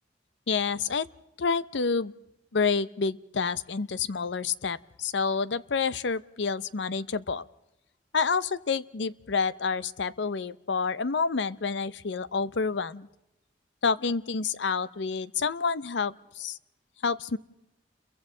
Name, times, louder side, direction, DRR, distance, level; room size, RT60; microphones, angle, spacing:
voice 1, 0.5-1.1 1.4-2.1 2.5-7.5 8.1-13.1 13.8-16.6 17.0-17.4, left 5 dB, 75° left, 18 dB, 0.6 m, -28 dB
30.0 x 22.5 x 3.8 m, 0.88 s
head